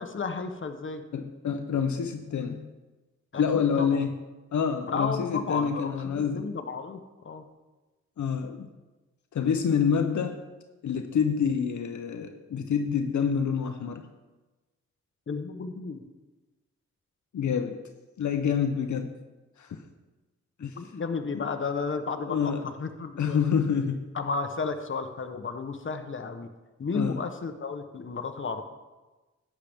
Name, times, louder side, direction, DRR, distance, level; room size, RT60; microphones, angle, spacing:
voice 1, 0.0-1.0 3.3-3.4 3.8-4.0 4.9-7.0 7.2-7.4 15.3-16.0 20.6-23.6 24.1-26.5 26.8-28.6, left 4 dB, 40° left, 7 dB, 1.0 m, -33 dB
voice 2, 1.1-2.7 3.4-4.1 4.5-6.5 8.2-8.7 9.3-10.4 10.8-14.1 17.3-17.8 18.2-19.1 19.6-19.8 20.6-20.8 21.3-21.5 22.3-22.6 23.2-24.1 26.9-27.2, left 7 dB, 75° left, 7 dB, 0.7 m, -27 dB
11.5 x 8.6 x 3.5 m, 1.2 s
cardioid pair, 65°, 29 cm